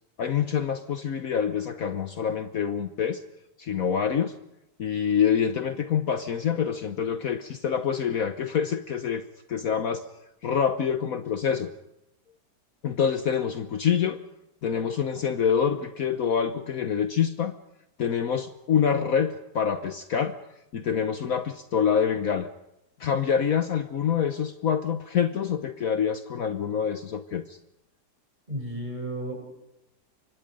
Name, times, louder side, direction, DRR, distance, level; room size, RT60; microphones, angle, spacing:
voice 1, 0.2-3.2 3.6-4.4 4.8-9.2 9.5-10.1 10.4-11.7 12.8-14.2 14.6-17.5 18.0-20.4 20.7-22.5 23.0-27.6, left 7 dB, 60° left, 9 dB, 1.3 m, -26 dB
voice 2, 28.5-29.4, right 1 dB, 25° right, 1 dB, 7.6 m, -33 dB
28.5 x 24.5 x 5.3 m, 0.89 s
omnidirectional pair, 1.8 m